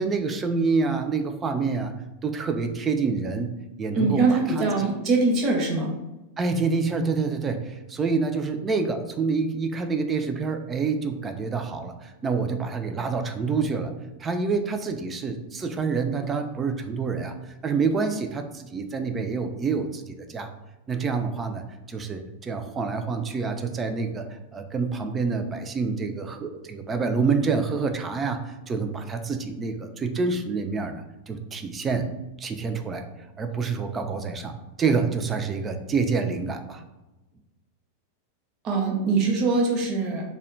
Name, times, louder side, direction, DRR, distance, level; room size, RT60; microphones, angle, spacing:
voice 1, 0.0-1.9 2.2-3.5 3.8-4.3 4.6-4.8 6.4-13.9 14.2-20.5 20.9-33.1 33.4-36.8, right 4 dB, 20° right, 6 dB, 0.3 m, -27 dB
voice 2, 3.9-5.9 38.6-40.2, right 3 dB, 40° right, 0 dB, 0.7 m, -23 dB
2.1 x 2.1 x 3.8 m, 1.0 s
hypercardioid pair, 125°, 0 cm